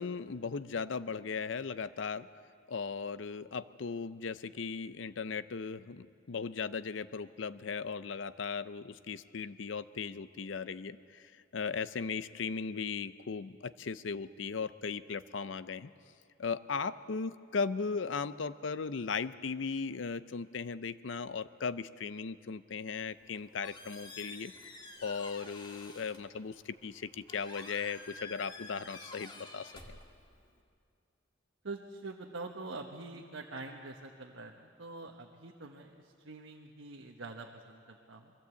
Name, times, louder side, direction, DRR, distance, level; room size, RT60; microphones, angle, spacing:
voice 1, 0.0-2.3 2.7-15.9 16.4-24.5 25.0-30.0, left 5 dB, 70° left, 15 dB, 0.5 m, -37 dB
Squeak, 23.1-30.6, left 2 dB, 25° left, 1.7 m, -50 dB
voice 2, 31.6-38.3, right 3 dB, 90° right, 1 dB, 1.2 m, -45 dB
22.5 x 15.5 x 8.2 m, 2.3 s
head